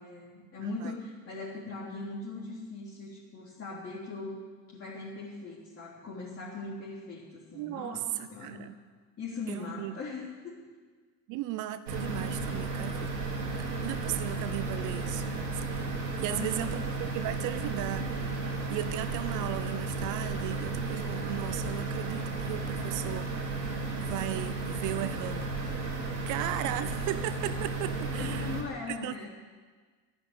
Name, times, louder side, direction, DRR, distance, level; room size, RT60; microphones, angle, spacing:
voice 1, 0.0-4.4 4.7-8.7 9.2-10.6 16.2-16.8 26.2-26.3 28.1-29.3, left 3 dB, 25° left, -6 dB, 3.6 m, -40 dB
voice 2, 0.6-0.9 7.5-8.0 8.4-8.8 9.5-10.0 11.3-15.9 16.2-23.3 24.0-25.6 26.3-28.5 28.9-29.1, right 14 dB, 40° right, 14 dB, 0.7 m, -36 dB
sound 1, 11.9-28.6, right 3 dB, 80° right, 3.1 m, -34 dB
13.5 x 10.5 x 8.2 m, 1.5 s
figure-of-eight pair, 80°, 49 cm